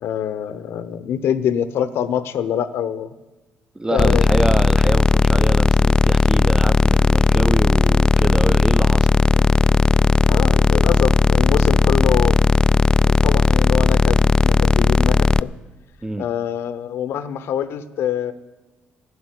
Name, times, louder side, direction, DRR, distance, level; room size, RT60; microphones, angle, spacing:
voice 1, 0.0-3.1 3.9-4.3 9.4-9.5 10.3-12.4 13.0-15.5 16.2-18.3, left 9 dB, 70° left, 14 dB, 0.8 m, -25 dB
voice 2, 3.7-9.1 16.0-16.3, right 2 dB, 15° right, 14 dB, 0.7 m, -26 dB
sound 1, 4.0-15.4, left 3 dB, 20° left, 0.3 m, -16 dB
12.5 x 7.2 x 9.7 m, 1.2 s
supercardioid pair, 65°, 4 cm